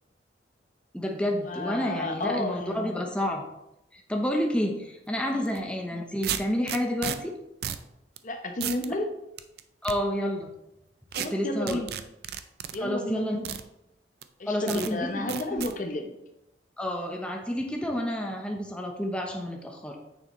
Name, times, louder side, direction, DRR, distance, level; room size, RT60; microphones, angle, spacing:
voice 1, 0.9-3.4 3.9-7.3 9.8-10.5 11.2-11.8 12.8-13.4 14.5-15.1 16.8-20.0, left 1 dB, 5° left, 1 dB, 0.8 m, -29 dB
voice 2, 1.4-3.0 5.3-5.4 8.2-9.1 11.1-11.9 12.7-13.6 14.4-16.1, left 1 dB, 45° left, 5 dB, 0.8 m, -32 dB
sound 1, 5.4-5.6 6.2-7.2 7.6-7.8 8.2-8.3 8.6-8.9 9.4-9.9 11.1-11.3 11.7-12.8 13.4-13.6 14.2-14.3 14.7-14.9 15.3-15.7, right 9 dB, 60° right, 0.5 m, -33 dB
9.4 x 6.6 x 3.1 m, 0.88 s
head